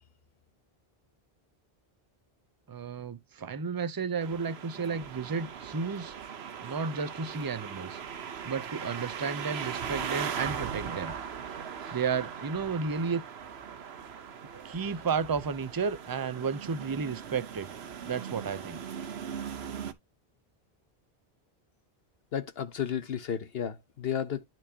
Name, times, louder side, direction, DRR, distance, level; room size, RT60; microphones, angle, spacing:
voice 1, 2.7-6.1 6.6-8.0 8.4-11.1 11.9-13.2 14.6-17.7 18.0-18.8, right 5 dB, 25° right, 0.6 m, -32 dB
sound 1, 4.2-19.9, right 7 dB, 85° right, 1.2 m, -39 dB
voice 2, 22.3-24.4, left 8 dB, 75° left, 1.0 m, -33 dB
12.5 x 4.5 x 2.8 m
omnidirectional pair, 1.0 m